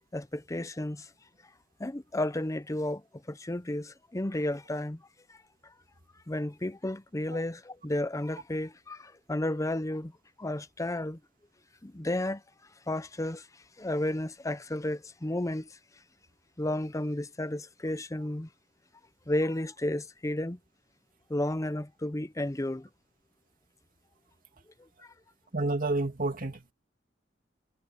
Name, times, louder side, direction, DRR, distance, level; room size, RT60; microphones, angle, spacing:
voice 1, 0.1-1.1 1.8-5.0 5.3-5.4 5.6-5.7 6.3-10.1 10.4-11.2 11.8-12.4 12.9-15.8 16.6-18.5 19.3-20.6 21.3-22.9 24.8-25.1, left 1 dB, 15° left, 0.7 m, -32 dB
voice 2, 25.5-26.7, right 2 dB, 45° right, 2.7 m, -29 dB
head